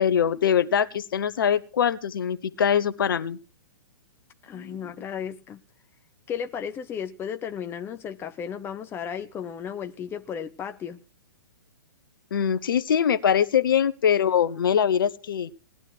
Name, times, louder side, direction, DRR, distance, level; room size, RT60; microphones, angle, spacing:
voice 1, 0.0-3.4 4.5-4.8 12.3-15.5, left 8 dB, 65° left, 1.2 m, -23 dB
voice 2, 4.4-5.6 6.3-11.0, left 8 dB, 20° left, 0.9 m, -34 dB
19.0 x 12.0 x 4.6 m
hypercardioid pair, 120°, 12 cm